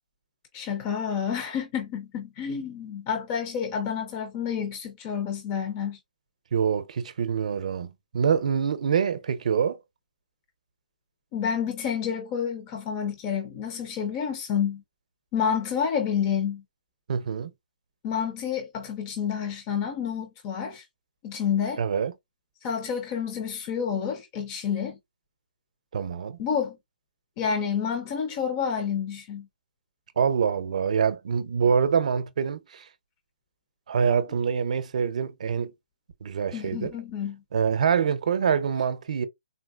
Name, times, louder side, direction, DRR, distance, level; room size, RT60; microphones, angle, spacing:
voice 1, 0.5-6.0 11.3-14.8 15.3-16.6 18.0-20.9 21.2-21.8 22.6-25.0 26.4-26.8 27.4-29.5 36.5-37.4, left 7 dB, 20° left, 0.5 m, -29 dB
voice 2, 6.5-9.8 17.1-17.5 21.8-22.1 25.9-26.4 30.2-32.9 33.9-35.7 36.2-36.9 37.5-39.3, right 7 dB, 50° right, 0.6 m, -25 dB
3.8 x 2.4 x 2.3 m
hypercardioid pair, 165°, 5 cm